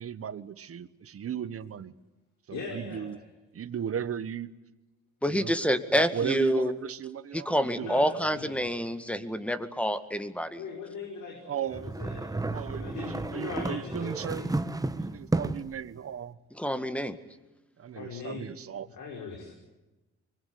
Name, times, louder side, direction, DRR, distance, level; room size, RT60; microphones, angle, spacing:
voice 1, 0.0-1.9 2.5-3.2 3.5-4.5 5.3-5.5 5.9-8.0 11.4-12.0 12.5-14.5 15.0-16.4 17.8-18.9, right 8 dB, 50° right, 16 dB, 1.3 m, -36 dB
voice 2, 2.5-3.2 7.8-8.7 10.6-14.5 17.9-18.4 18.9-19.5, left 5 dB, 75° left, 0 dB, 5.9 m, -40 dB
voice 3, 5.2-6.7 7.3-10.6 16.6-17.2, equal, 5° left, 10 dB, 2.0 m, -27 dB
sound 1, 11.7-15.8, right 2 dB, 10° right, 1.4 m, -32 dB
24.5 x 21.5 x 9.7 m, 1.1 s
cardioid pair, 90°, 30 cm